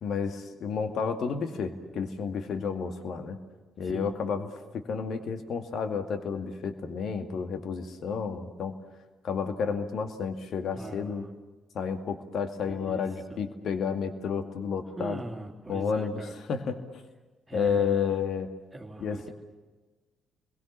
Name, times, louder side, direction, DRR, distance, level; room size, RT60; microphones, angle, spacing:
voice 1, 0.0-3.4 3.8-4.5 4.7-8.7 9.2-11.3 11.7-15.2 15.7-16.8 17.5-18.5 19.0-19.3, left 6 dB, 55° left, 7 dB, 2.2 m, -31 dB
voice 2, 3.8-4.1 10.7-11.3 12.6-13.4 15.0-16.3 17.5-18.1 18.7-19.3, right 2 dB, 20° right, -2 dB, 2.8 m, -41 dB
29.5 x 22.0 x 7.5 m, 1.3 s
figure-of-eight pair, 45°, 0 cm